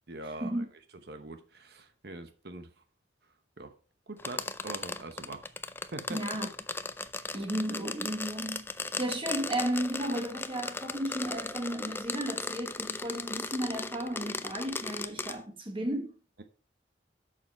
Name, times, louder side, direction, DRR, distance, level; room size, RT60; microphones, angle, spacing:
voice 1, 0.1-0.7 1.1-2.7 3.6-3.8 4.1-5.4 5.9-6.2, right 2 dB, 55° right, 0.9 m, -43 dB
sound 1, 4.2-15.4, left 3 dB, 10° left, 0.3 m, -37 dB
voice 2, 6.1-6.5 7.3-8.7 9.0-16.1, right 1 dB, 25° right, 1.3 m, -34 dB
7.6 x 6.5 x 4.7 m
head